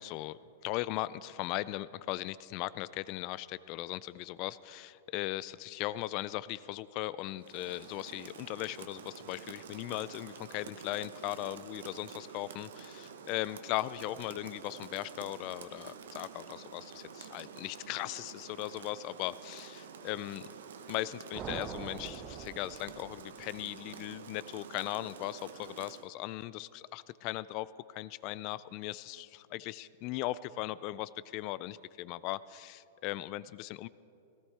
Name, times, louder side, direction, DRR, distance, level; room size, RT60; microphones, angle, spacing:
voice 1, 0.0-20.5 20.9-33.9, left 16 dB, 45° left, 18 dB, 0.3 m, -38 dB
Rain, 7.4-26.1, right 6 dB, 80° right, 0.8 m, -49 dB
sound 1, 21.3-23.6, right 7 dB, 30° right, 0.7 m, -43 dB
17.5 x 12.5 x 3.3 m, 2.7 s
hypercardioid pair, 125°, 0 cm